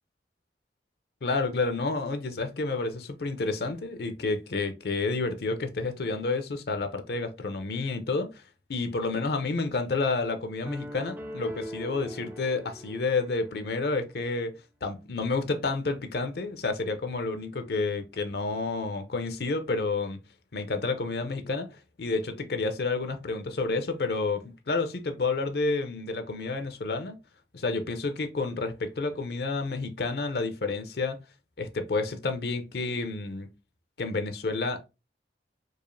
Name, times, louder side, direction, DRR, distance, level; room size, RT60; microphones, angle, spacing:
voice 1, 1.2-8.4 8.7-14.5 14.8-20.2 20.5-21.7 22.0-27.2 27.5-31.2 31.6-33.5 34.0-34.8, left 3 dB, 60° left, 0.5 m, -30 dB
sound 1, 10.6-13.9, equal, 10° right, 0.4 m, -41 dB
4.8 x 2.4 x 2.6 m
head